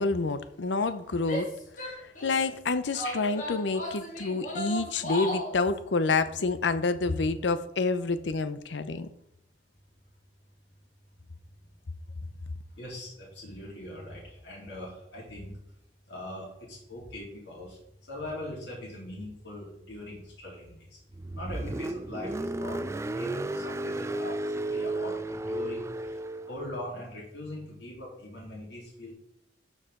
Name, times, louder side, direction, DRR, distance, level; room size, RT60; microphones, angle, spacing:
voice 1, 0.0-1.5 1.8-9.1, left 3 dB, 90° left, 0.7 m, -28 dB
Female speech woman speaking / Yell, 1.2-2.5 2.9-5.6, equal, 45° left, 2.5 m, -35 dB
voice 2, 12.7-15.6 16.1-17.8 18.1-21.0 21.3-22.8 23.1-25.8 26.5-29.1, left 1 dB, 70° left, 3.6 m, -41 dB
Car, 21.1-26.6, right 2 dB, 15° right, 0.3 m, -33 dB
12.5 x 4.9 x 3.8 m
head